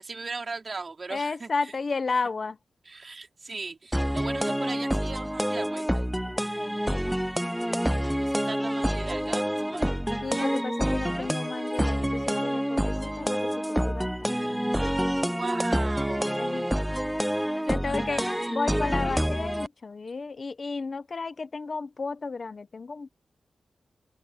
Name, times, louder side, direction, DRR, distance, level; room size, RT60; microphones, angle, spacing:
voice 1, 0.0-1.5 2.9-6.1 8.0-9.9 15.4-16.8 17.6-18.6, right 4 dB, 40° right, 4.2 m, -38 dB
voice 2, 1.1-2.6 6.3-7.3 10.2-14.9 16.3-16.8 17.5-18.2 18.5-23.1, left 4 dB, 45° left, 0.8 m, -33 dB
sound 1, 3.9-19.7, equal, 5° right, 0.4 m, -27 dB
open air
wide cardioid pair, 140°, 0 cm